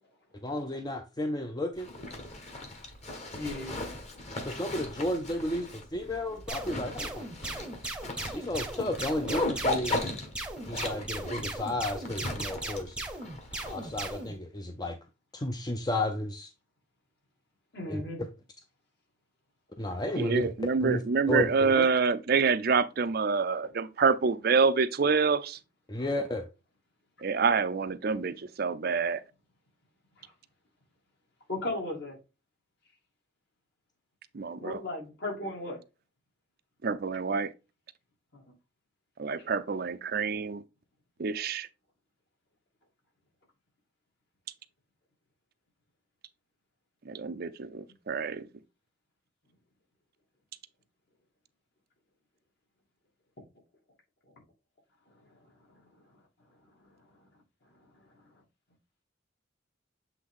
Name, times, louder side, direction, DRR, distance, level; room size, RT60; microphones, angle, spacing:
voice 1, 0.4-1.9 4.4-7.2 8.3-10.0 10.7-13.0 13.7-15.0 15.3-16.5 17.9-18.3 19.8-20.5 20.8-21.0 21.3-21.9 25.9-26.5, left 1 dB, 20° left, 0.6 m, -32 dB
Zipper (clothing), 1.8-14.3, left 2 dB, 35° left, 1.5 m, -37 dB
voice 2, 3.3-3.7 17.7-18.2 30.2-30.3 31.5-32.2 34.6-35.8 38.3-38.4 39.4-39.5 55.2-55.4 56.9-57.0, left 2 dB, 60° left, 2.6 m, -36 dB
sound 1, 6.5-14.3, right 2 dB, 5° right, 0.9 m, -37 dB
voice 3, 20.2-25.6 27.2-29.2 34.3-34.8 36.8-37.5 39.2-40.6 41.2-41.7 47.1-48.5, right 5 dB, 50° right, 0.5 m, -27 dB
7.8 x 3.4 x 3.7 m
head